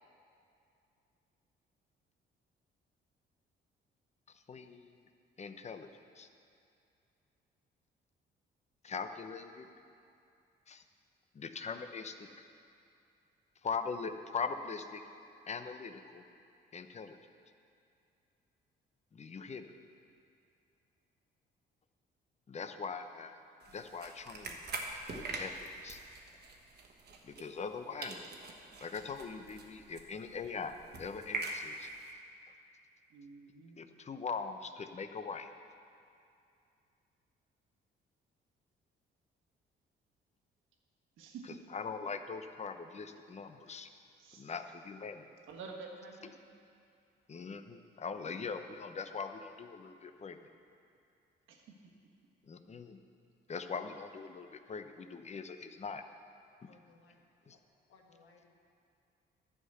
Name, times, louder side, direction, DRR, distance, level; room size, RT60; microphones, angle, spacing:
voice 1, 4.5-5.0 5.4-5.9 6.2-6.3 8.8-9.7 10.7-10.8 11.3-12.3 13.6-15.0 15.5-16.2 16.7-17.2 19.1-19.7 22.5-23.4 23.7-24.6 25.1-26.0 27.2-28.3 28.8-30.7 31.0-31.9 33.8-35.5 41.4-43.9 44.4-45.3 46.2-46.3 47.3-50.4 52.5-53.0 53.5-56.0 56.6-56.8 57.5-57.6, left 5 dB, 35° left, 8 dB, 0.7 m, -41 dB
sound 1, 23.6-27.8 28.0-32.1, right 3 dB, 55° right, 1.3 m, -44 dB
voice 2, 33.1-33.9 41.2-41.5 44.2-44.4 45.5-46.4 51.5-51.6, right 4 dB, 85° right, 1 dB, 1.4 m, -49 dB
voice 3, 56.7-57.2 57.5-57.6 57.9-58.5, left 4 dB, 85° left, 0 dB, 1.6 m, -63 dB
11.0 x 5.9 x 7.9 m, 2.5 s
cardioid pair, 90°, 20 cm